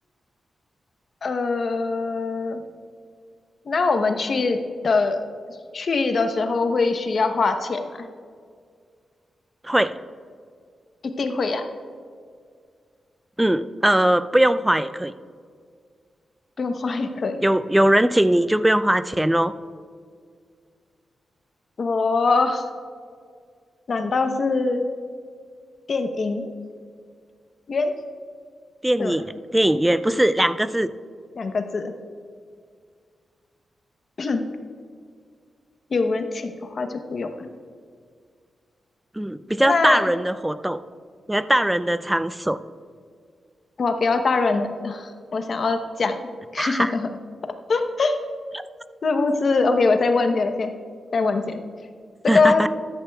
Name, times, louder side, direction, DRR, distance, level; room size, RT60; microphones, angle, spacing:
voice 1, 1.2-2.6 3.7-5.2 5.7-7.8 11.2-11.7 16.6-17.4 21.8-22.6 23.9-24.8 25.9-26.5 27.7-27.9 29.0-29.2 31.4-31.8 34.2-34.4 35.9-37.5 39.6-40.0 43.8-46.2 46.5-47.1 47.7-48.2 49.0-50.7 51.1-51.6 52.3-52.7, left 3 dB, 55° left, 7 dB, 0.9 m, -22 dB
voice 2, 9.6-10.0 13.4-15.1 17.4-19.5 28.8-30.9 39.2-40.8 41.3-42.6 46.6-46.9 52.3-52.7, right 1 dB, 10° right, 13 dB, 0.3 m, -20 dB
14.0 x 11.5 x 2.3 m, 2.1 s
cardioid pair, 95°, 0 cm